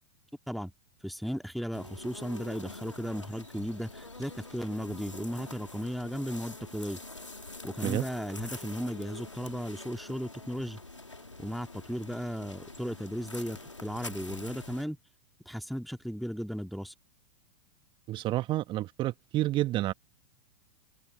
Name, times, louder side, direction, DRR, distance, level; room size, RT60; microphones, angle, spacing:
voice 1, 1.0-7.0 7.6-10.8 11.4-15.0 15.5-16.9, equal, ahead, 2.2 m, -35 dB
sound 1, 1.7-14.8, left 2 dB, 90° left, 2.9 m, -45 dB
voice 2, 18.1-19.9, right 15 dB, 30° right, 1.3 m, -29 dB
figure-of-eight pair, 95°, 15 cm